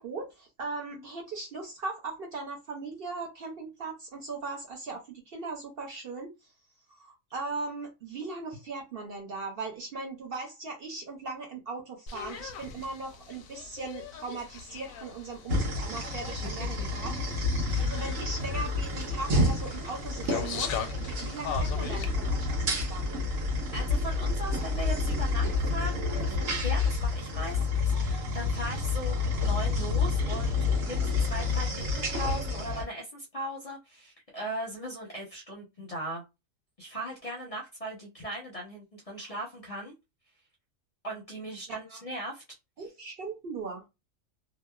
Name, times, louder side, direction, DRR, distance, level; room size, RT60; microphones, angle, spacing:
voice 1, 0.0-6.3 6.9-17.1 17.8-20.8 21.1-23.3 39.2-39.3 41.9-42.0 42.8-43.8, right 3 dB, 55° right, 0.7 m, -39 dB
sound 1, 12.1-22.1, left 7 dB, 90° left, 1.0 m, -41 dB
sound 2, 15.5-32.8, left 3 dB, 85° right, 1.2 m, -29 dB
voice 2, 23.7-36.2 36.8-39.9 41.0-42.4, equal, 35° left, 0.6 m, -38 dB
2.8 x 2.1 x 2.2 m
omnidirectional pair, 1.4 m